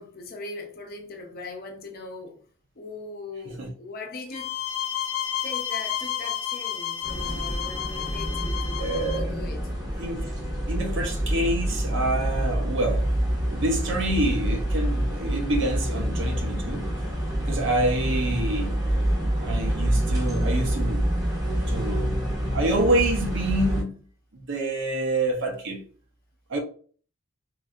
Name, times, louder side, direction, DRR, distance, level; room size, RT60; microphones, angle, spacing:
voice 1, 0.0-2.4 2.8-4.6 5.4-9.7, left 3 dB, 50° left, 0.6 m, -40 dB
sound 1, 4.3-9.2, left 10 dB, 90° left, 0.3 m, -31 dB
sound 2, 7.0-23.8, equal, 20° right, 0.7 m, -27 dB
voice 2, 8.8-9.4 10.0-10.3 10.7-13.1 13.5-16.9 17.4-18.7 19.4-21.1 21.7-22.2 22.5-24.0 24.3-25.8 26.5-26.6, right 1 dB, 65° right, 0.7 m, -27 dB
3.2 x 2.5 x 2.4 m
head